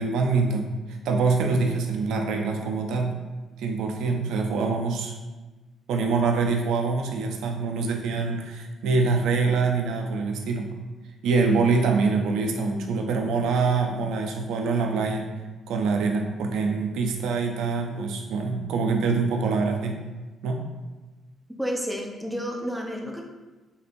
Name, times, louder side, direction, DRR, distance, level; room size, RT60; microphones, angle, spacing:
voice 1, 0.0-3.1 3.6-5.1 5.9-10.7 11.2-15.2 15.7-20.0 20.4-20.6, right 4 dB, 85° right, 3 dB, 0.4 m, -25 dB
voice 2, 21.6-23.2, equal, 5° right, 0 dB, 0.6 m, -30 dB
4.0 x 2.6 x 2.5 m, 1.2 s
cardioid pair, 90°, 0 cm